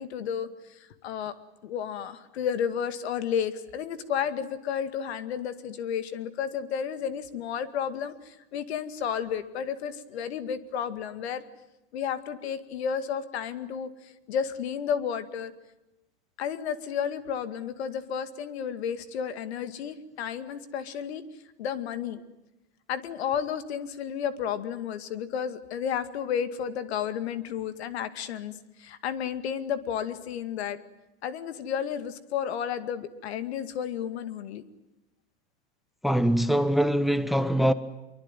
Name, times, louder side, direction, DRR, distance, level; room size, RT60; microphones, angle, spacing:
voice 1, 0.0-1.3 1.6-11.4 11.9-15.5 16.4-21.2 21.6-22.2 22.9-28.5 28.8-30.8 31.2-34.6, left 8 dB, 80° left, 2.2 m, -32 dB
voice 2, 36.0-37.7, equal, ahead, 1.0 m, -23 dB
25.0 x 23.5 x 9.2 m
supercardioid pair, 130°, 32 cm